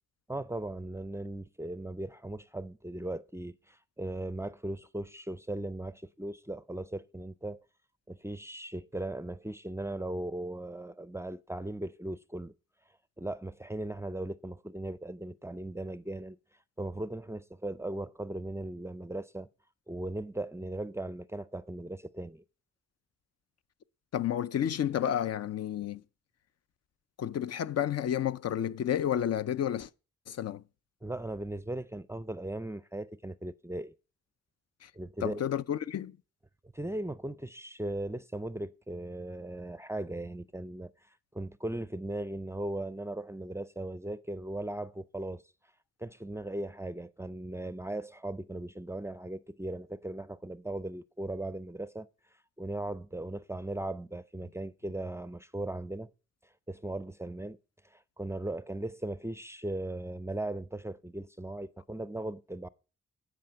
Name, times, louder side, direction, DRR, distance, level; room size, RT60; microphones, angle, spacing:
voice 1, 0.3-7.6 8.1-12.5 13.2-16.4 16.8-19.5 19.9-22.4 31.0-33.9 34.9-35.4 36.7-40.9 41.3-45.4 46.0-52.1 52.6-56.1 56.7-57.6 57.8-62.7, right 1 dB, 10° right, 0.4 m, -38 dB
voice 2, 24.1-26.0 27.2-29.9 30.3-30.6 34.8-34.9 35.2-36.1, left 10 dB, 60° left, 0.5 m, -31 dB
10.5 x 5.0 x 6.9 m
cardioid pair, 70°, 29 cm